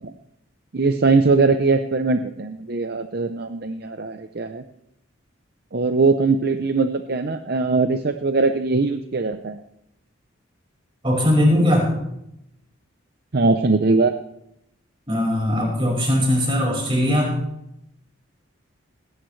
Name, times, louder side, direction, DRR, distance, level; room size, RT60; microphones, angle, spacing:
voice 1, 0.7-4.6 5.7-9.6 13.3-14.1, right 3 dB, 50° right, 8 dB, 0.6 m, -21 dB
voice 2, 11.0-11.9 15.1-17.3, left 1 dB, 25° right, -1 dB, 5.2 m, -19 dB
18.0 x 16.5 x 3.2 m, 0.80 s
head